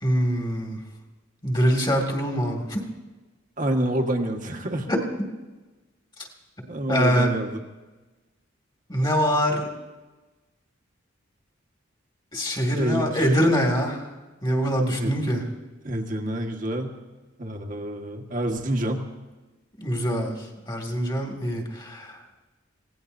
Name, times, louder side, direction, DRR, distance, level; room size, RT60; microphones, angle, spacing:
voice 1, 0.0-0.8 1.4-2.8 4.9-5.0 6.9-7.3 8.9-9.7 12.3-14.0 14.4-15.4 19.8-20.4 20.7-22.1, equal, 25° left, 1 dB, 2.3 m, -23 dB
voice 2, 3.6-4.9 6.7-7.6 12.7-13.2 14.9-15.2 15.8-16.9 17.4-19.0, right 1 dB, 45° right, 3 dB, 1.6 m, -27 dB
26.0 x 17.5 x 2.7 m, 1.2 s
head